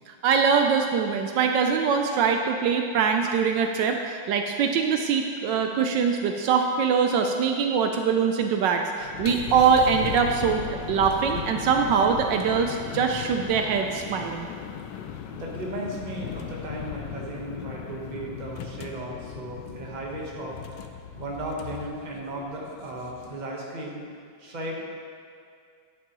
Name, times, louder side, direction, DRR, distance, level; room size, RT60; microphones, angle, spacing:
voice 1, 0.2-10.6 10.9-14.5, right 6 dB, 75° right, 4 dB, 1.2 m, -23 dB
sound 1, 9.0-23.4, left 8 dB, 75° left, 1.2 m, -37 dB
voice 2, 15.3-20.6 21.1-24.0 24.4-24.8, right 1 dB, 30° right, -2 dB, 1.1 m, -35 dB
10.5 x 8.7 x 3.0 m, 2.3 s
omnidirectional pair, 2.0 m